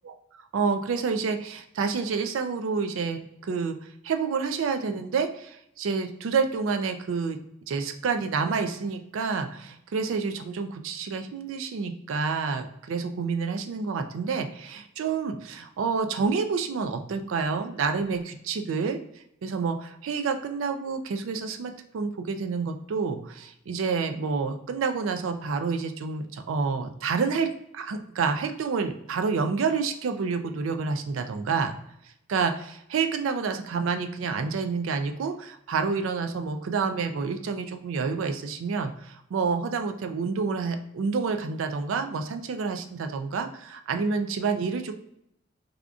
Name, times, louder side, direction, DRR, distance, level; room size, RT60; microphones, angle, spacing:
voice 1, 0.5-3.8 4.0-7.4 7.7-19.0 19.4-31.7 32.3-44.9, right 5 dB, 80° right, 7 dB, 0.4 m, -28 dB
4.9 x 2.4 x 2.3 m, 0.77 s
head